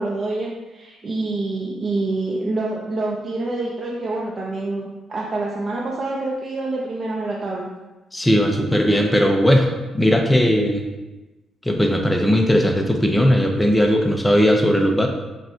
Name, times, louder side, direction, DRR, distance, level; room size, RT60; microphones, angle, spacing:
voice 1, 0.0-7.7, right 2 dB, 40° right, -4 dB, 0.5 m, -26 dB
voice 2, 8.1-9.7 9.9-10.8 11.6-15.1, equal, 10° left, 3 dB, 0.6 m, -17 dB
6.2 x 2.2 x 2.7 m, 1.1 s
cardioid pair, 90°, 0 cm